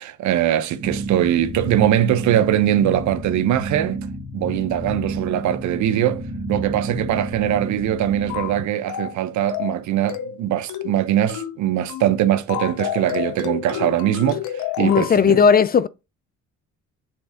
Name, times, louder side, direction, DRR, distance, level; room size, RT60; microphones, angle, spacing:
voice 1, 0.0-4.0 4.3-6.2 6.5-15.4, right 11 dB, 75° right, 0.7 m, -21 dB
sound 1, 0.8-8.6, right 2 dB, 30° right, 1.9 m, -31 dB
sound 2, 8.3-8.6 8.9-9.2 9.5-9.8 10.1-10.4 10.7-11.0 11.3-11.6 11.9-12.1 12.5-15.1, left 11 dB, 85° left, 0.8 m, -29 dB
voice 2, 14.8-15.9, left 6 dB, 30° left, 0.4 m, -16 dB
6.1 x 3.6 x 4.9 m
cardioid pair, 95°, 29 cm